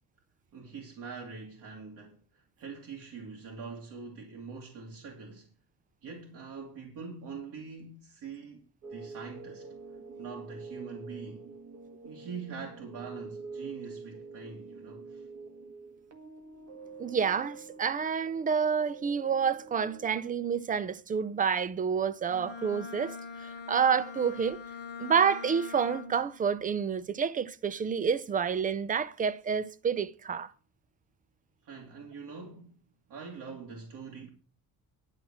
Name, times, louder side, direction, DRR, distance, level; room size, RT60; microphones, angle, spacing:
voice 1, 0.5-5.5 6.0-8.6 8.9-9.7 10.2-11.5 12.0-15.3 31.6-32.8 33.1-34.3, right 5 dB, 65° right, 2.3 m, -44 dB
sound 1, 8.8-20.1, right 4 dB, 50° right, 1.7 m, -46 dB
voice 2, 17.0-24.6 25.0-30.5, right 6 dB, 25° right, 0.6 m, -29 dB
Bowed string instrument, 22.3-26.4, left 5 dB, 30° left, 1.1 m, -43 dB
11.0 x 6.0 x 7.3 m
cardioid pair, 145°, 34 cm